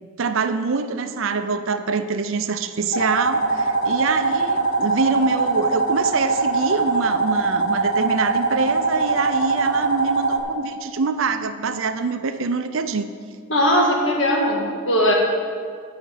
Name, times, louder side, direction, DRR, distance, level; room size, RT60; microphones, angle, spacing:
voice 1, 0.0-13.1, right 4 dB, 65° right, 10 dB, 0.5 m, -25 dB
sound 1, 2.9-10.4, right 3 dB, 45° left, 0.9 m, -22 dB
voice 2, 13.5-15.1, equal, 60° left, -1 dB, 1.7 m, -19 dB
9.1 x 5.0 x 7.8 m, 2.1 s
head